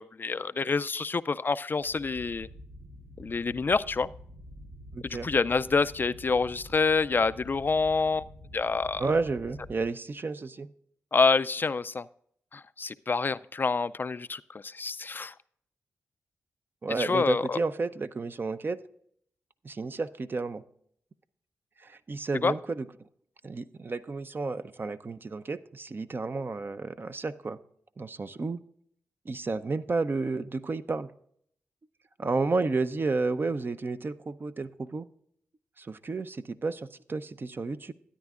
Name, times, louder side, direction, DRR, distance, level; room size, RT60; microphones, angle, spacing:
voice 1, 0.0-2.5 3.2-4.1 5.2-8.2 8.5-9.0 11.1-12.1 12.5-15.3 17.0-17.6 22.4-22.5, left 4 dB, 40° left, 15 dB, 0.3 m, -27 dB
sound 1, 1.8-9.8, equal, 85° right, 1.3 m, -48 dB
voice 2, 4.9-5.3 9.0-10.7 16.8-18.8 19.6-20.6 21.8-22.9 23.4-27.6 28.0-28.6 29.3-31.1 32.2-35.1 35.8-37.9, right 3 dB, 40° right, 11 dB, 0.6 m, -31 dB
12.5 x 9.7 x 2.4 m, 0.66 s
supercardioid pair, 45°, 5 cm